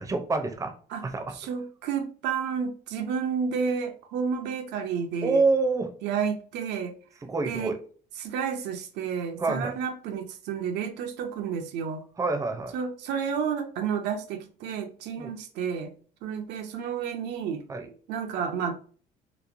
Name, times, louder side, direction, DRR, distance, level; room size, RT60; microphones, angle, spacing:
voice 1, 0.0-0.7 1.0-1.4 5.2-5.9 7.2-7.8 9.4-9.7 12.2-12.7 15.2-15.3 17.7-17.9, right 3 dB, 20° right, 0.5 m, -26 dB
voice 2, 1.3-5.4 6.0-6.9 7.5-7.7 8.2-12.0 12.7-15.9 16.2-17.6 18.1-18.7, right 6 dB, 85° right, 0.5 m, -31 dB
2.9 x 2.1 x 2.5 m
cardioid pair, 110°, 17 cm